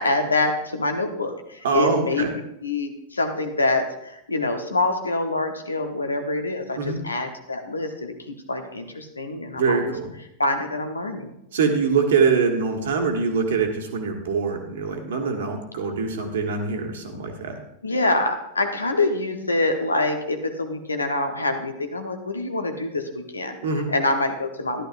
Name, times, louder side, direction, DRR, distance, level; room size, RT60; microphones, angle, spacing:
voice 1, 0.0-9.9 10.4-11.3 17.8-23.6 23.9-24.9, left 2 dB, 80° left, 6 dB, 1.0 m, -25 dB
voice 2, 1.6-2.3 6.8-7.0 9.6-10.1 11.5-17.6 23.6-23.9, right 5 dB, 60° right, 4 dB, 1.6 m, -23 dB
13.0 x 11.0 x 2.6 m, 0.82 s
figure-of-eight pair, 90°, 0 cm